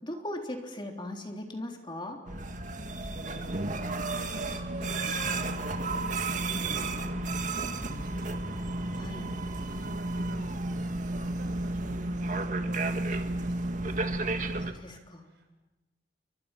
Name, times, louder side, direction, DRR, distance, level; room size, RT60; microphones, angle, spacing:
voice 1, 0.0-2.2 9.0-9.3 14.7-15.2, left 1 dB, 25° left, 2 dB, 3.5 m, -38 dB
sound 1, 2.3-14.7, right 2 dB, 45° right, 1.8 m, -32 dB
voice 2, 2.7-8.4 9.3-14.0 15.2-15.5, right 1 dB, 60° right, 4 dB, 6.5 m, -48 dB
30.0 x 25.5 x 5.9 m, 1.1 s
head